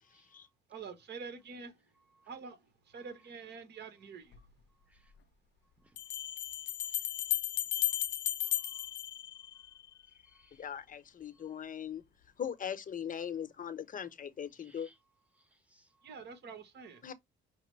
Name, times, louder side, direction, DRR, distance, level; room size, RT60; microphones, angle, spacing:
voice 1, 0.1-0.4 2.1-2.3 4.9-5.1 5.8-6.0 6.9-7.1 8.4-8.9 10.2-10.7 11.3-11.6 14.6-15.0 15.3-16.1, right 1 dB, 5° right, 0.9 m, -67 dB
voice 2, 0.7-1.8 2.3-4.4 16.0-17.0, right 5 dB, 60° right, 1.2 m, -47 dB
sound 1, 4.3-4.4 6.0-9.9, left 13 dB, 65° left, 0.5 m, -35 dB
voice 3, 10.6-12.0 12.4-14.9 17.0-17.1, left 8 dB, 45° left, 0.8 m, -40 dB
5.9 x 2.1 x 3.2 m
cardioid pair, 90°, 20 cm